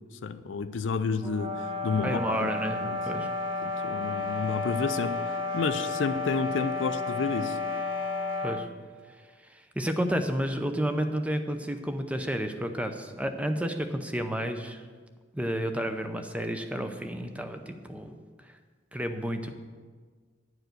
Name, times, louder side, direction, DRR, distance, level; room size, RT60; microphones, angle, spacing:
voice 1, 0.2-2.5 2.8-3.2 3.6-7.6, left 4 dB, 90° left, 11 dB, 0.5 m, -31 dB
sound 1, 1.2-8.7, left 3 dB, 50° right, 1.4 m, -32 dB
voice 2, 2.0-3.3 8.4-8.7 9.4-14.8 15.3-18.1 18.4-18.5 18.9-19.5, equal, 5° right, 7 dB, 0.6 m, -31 dB
10.0 x 4.8 x 7.9 m, 1.5 s
head